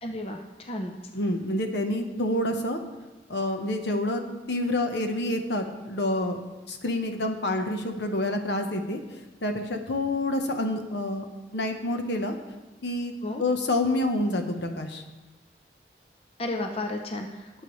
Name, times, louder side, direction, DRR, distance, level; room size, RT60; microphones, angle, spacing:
voice 1, 0.0-0.9 13.2-13.4 16.4-17.5, left 1 dB, 35° left, 3 dB, 0.7 m, -33 dB
voice 2, 1.1-2.8 3.3-4.2 4.5-6.4 6.7-9.0 9.4-11.2 11.5-12.3 12.8-13.1 13.4-15.0, left 1 dB, 75° left, 5 dB, 1.1 m, -27 dB
18.5 x 6.9 x 3.2 m, 1.2 s
head